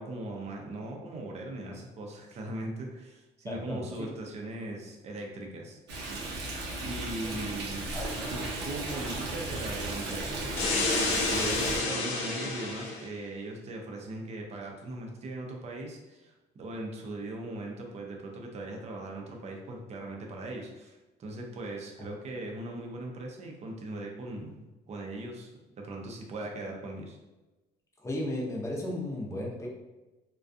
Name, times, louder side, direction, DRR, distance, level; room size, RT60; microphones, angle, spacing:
voice 1, 0.0-5.8 6.8-8.0 8.3-27.2, right 2 dB, 40° right, 1 dB, 0.5 m, -39 dB
voice 2, 3.4-3.8 7.9-8.4 28.0-29.7, left 1 dB, 15° left, -3 dB, 0.6 m, -34 dB
Stream, 5.9-11.8, right 2 dB, 85° right, 0.6 m, -35 dB
sound 1, 10.6-13.0, left 3 dB, 70° left, 0.5 m, -29 dB
2.3 x 2.3 x 2.5 m, 1.1 s
cardioid pair, 110°, 17 cm